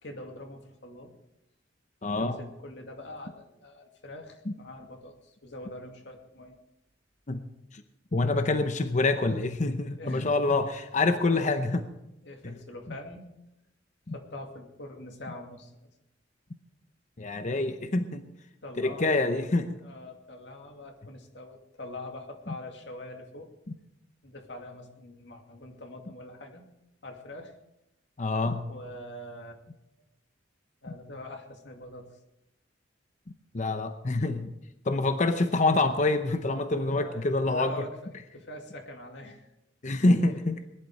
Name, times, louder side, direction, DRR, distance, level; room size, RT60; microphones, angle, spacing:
voice 1, 0.0-1.1 2.1-6.6 10.0-10.4 11.3-11.7 12.2-13.2 14.1-15.7 18.6-19.1 19.4-19.5 19.8-23.5 24.2-26.6 27.0-27.5 28.7-29.6 30.8-32.1 36.8-38.0 38.3-39.5, left 1 dB, 70° left, 3 dB, 2.5 m, -43 dB
voice 2, 2.0-2.4 4.5-4.6 7.3-7.4 8.1-11.8 12.4-12.5 14.1-14.2 17.2-18.2 18.8-19.8 28.2-28.7 33.5-34.5 34.8-37.7 39.8-40.6, left 2 dB, 40° left, 9 dB, 0.8 m, -26 dB
20.5 x 11.5 x 4.9 m, 0.89 s
head